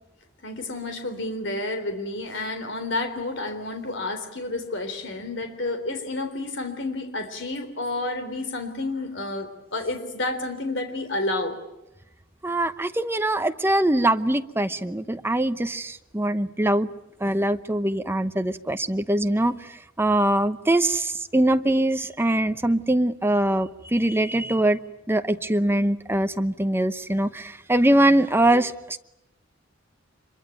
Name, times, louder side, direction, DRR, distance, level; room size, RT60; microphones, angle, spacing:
voice 1, 0.4-11.6, left 2 dB, 60° left, 7 dB, 3.7 m, -30 dB
voice 2, 12.4-16.9 17.2-19.5 20.0-24.8 25.1-29.0, right 1 dB, 10° right, 9 dB, 0.9 m, -22 dB
25.5 x 23.0 x 9.2 m, 0.93 s
head